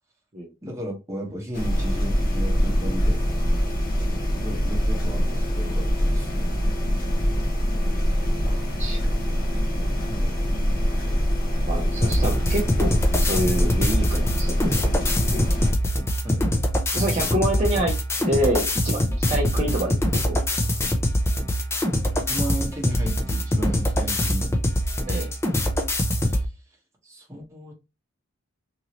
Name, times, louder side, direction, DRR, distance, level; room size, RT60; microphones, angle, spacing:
voice 1, 0.6-3.2 4.3-6.6 10.0-10.3 16.2-16.5 22.1-24.5 26.2-26.5 27.0-27.7, right 1 dB, 15° right, 1.0 m, -35 dB
sound 1, 1.5-15.7, equal, 45° left, 0.8 m, -24 dB
voice 2, 11.7-15.5 16.9-18.0 18.3-20.0 20.3-20.4 25.1-25.3, right 1 dB, 30° right, 0.6 m, -27 dB
sound 2, 12.0-26.5, left 1 dB, 15° left, 0.4 m, -24 dB
2.9 x 2.7 x 2.8 m
head